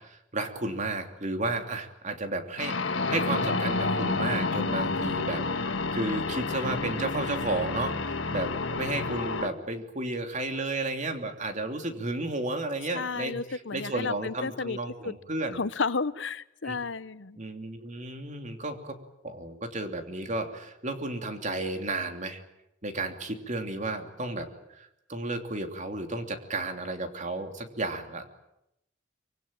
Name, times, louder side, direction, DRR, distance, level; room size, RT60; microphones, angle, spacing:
voice 1, 0.0-13.4 13.7-15.6 16.6-16.7 17.4-19.0 19.2-22.4 22.8-24.5 24.7-28.3, right 2 dB, 40° right, 6 dB, 3.1 m, -33 dB
sound 1, 2.6-9.5, left 3 dB, 90° left, 1.6 m, -29 dB
voice 2, 12.9-14.8 15.0-15.1 15.5-17.4, left 4 dB, 70° left, 16 dB, 0.9 m, -32 dB
25.0 x 24.5 x 8.9 m, 0.84 s
head